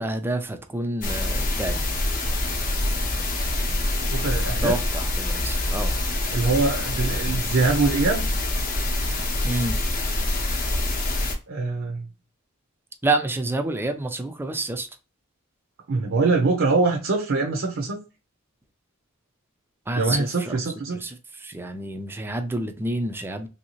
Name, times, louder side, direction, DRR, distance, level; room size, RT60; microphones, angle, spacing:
voice 1, 0.0-1.8 3.7-3.9 4.6-5.9 9.4-9.8 13.0-14.9 19.9-20.3 21.0-21.1 21.4-23.5, right 2 dB, 10° right, 0.4 m, -28 dB
sound 1, 1.0-11.3, left 1 dB, 40° left, 0.7 m, -25 dB
voice 2, 4.1-4.8 6.3-8.2 11.5-12.1 15.9-18.0 20.0-21.0, right 3 dB, 65° right, 0.5 m, -23 dB
3.1 x 2.7 x 2.9 m
head